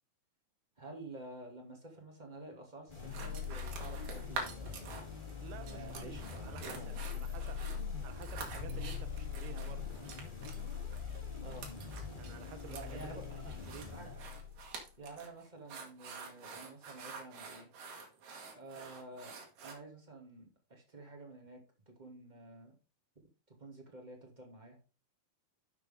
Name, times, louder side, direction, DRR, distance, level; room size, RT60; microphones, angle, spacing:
voice 1, 0.8-4.9 5.7-6.9 7.1-7.2 11.4-11.7 12.6-13.6 13.9-14.2 15.0-17.7 18.5-19.3 19.6-21.6 21.9-22.8 23.5-24.8, right 2 dB, 15° right, 2.0 m, -50 dB
sound 1, 2.9-14.8, left 6 dB, 15° left, 2.5 m, -42 dB
sound 2, 3.1-5.3 5.6-19.7, right 4 dB, 60° right, 3.2 m, -47 dB
voice 2, 5.4-7.6 8.0-9.9 12.2-13.9, right 10 dB, 85° right, 2.9 m, -51 dB
11.0 x 6.8 x 3.7 m
omnidirectional pair, 4.4 m